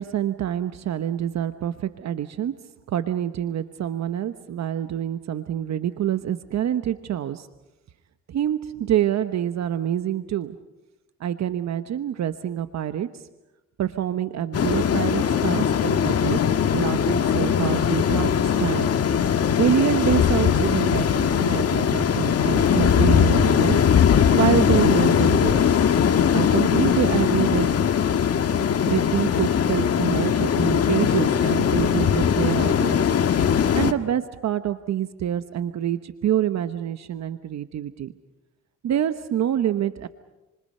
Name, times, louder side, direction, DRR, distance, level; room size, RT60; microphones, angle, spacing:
voice 1, 0.0-2.5 2.9-7.5 8.3-10.6 11.2-13.3 13.8-16.4 16.7-18.9 19.6-23.8 24.3-25.8 26.3-27.8 28.8-33.1 33.7-38.1 38.8-40.1, right 10 dB, 65° right, 10 dB, 1.1 m, -26 dB
sound 1, 14.5-33.9, left 8 dB, 55° left, 1.7 m, -20 dB
29.0 x 27.5 x 5.6 m, 1.0 s
cardioid pair, 90°, 30 cm